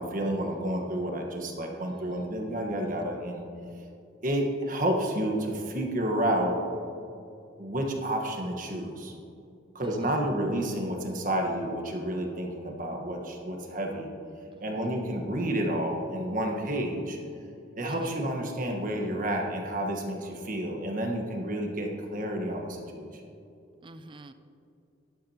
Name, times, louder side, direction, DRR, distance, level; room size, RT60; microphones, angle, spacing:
voice 1, 0.0-3.4 4.2-6.6 7.6-9.1 9.7-14.1 14.6-17.2 17.8-23.1, right 1 dB, 40° right, 2 dB, 1.4 m, -30 dB
voice 2, 1.9-2.3 9.8-10.1 14.6-14.8 17.9-18.2 23.8-24.3, right 2 dB, 25° right, 10 dB, 0.4 m, -48 dB
12.5 x 11.0 x 2.9 m, 2.6 s
head